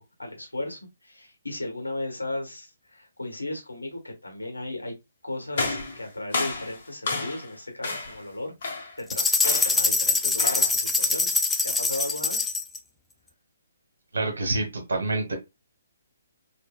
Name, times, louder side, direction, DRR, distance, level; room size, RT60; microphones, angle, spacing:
voice 1, 0.0-4.9 5.2-12.5, left 2 dB, 80° left, 1.4 m, -36 dB
sound 1, 5.5-7.5 7.8-8.2 8.6-9.0 9.4-9.9 10.4-10.8, left 3 dB, 45° left, 1.2 m, -31 dB
sound 2, 9.1-12.8, left 3 dB, 5° left, 0.3 m, -24 dB
voice 2, 14.1-15.4, right 2 dB, 65° right, 1.0 m, -27 dB
4.4 x 2.6 x 2.3 m
figure-of-eight pair, 135°, 0 cm